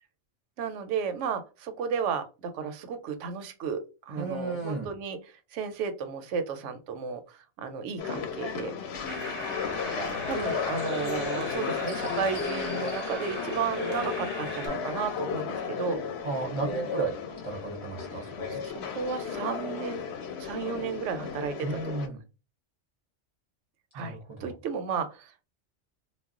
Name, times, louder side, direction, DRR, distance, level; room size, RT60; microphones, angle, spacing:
voice 1, 0.6-5.2 5.5-8.8 9.9-16.0 18.1-20.0 20.4-22.1 23.9-25.5, right 6 dB, 90° right, 9 dB, 0.9 m, -33 dB
voice 2, 4.2-4.9 16.2-18.7 21.6-22.2 23.9-24.5, right 3 dB, 45° right, 0 dB, 0.4 m, -34 dB
sound 1, 8.0-22.1, left 6 dB, 65° left, 0.8 m, -34 dB
sound 2, 9.0-14.7, left 1 dB, 25° left, 0.7 m, -37 dB
2.3 x 2.0 x 3.6 m, 0.31 s
omnidirectional pair, 1.2 m